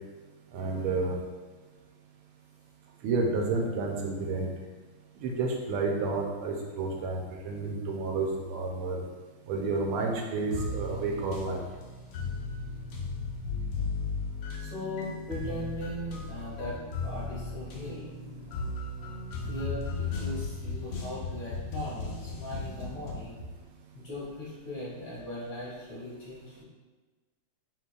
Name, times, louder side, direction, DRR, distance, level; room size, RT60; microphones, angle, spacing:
voice 1, 0.5-1.2 3.0-4.5 5.2-9.0 9.5-11.6, right 3 dB, 80° right, 0 dB, 1.5 m, -30 dB
sound 1, 10.5-23.3, left 3 dB, 90° left, 0.8 m, -36 dB
voice 2, 14.6-18.1 19.4-23.5 23.9-26.6, left 1 dB, 65° left, -8 dB, 2.2 m, -39 dB
5.9 x 3.0 x 2.3 m, 1.4 s
omnidirectional pair, 2.4 m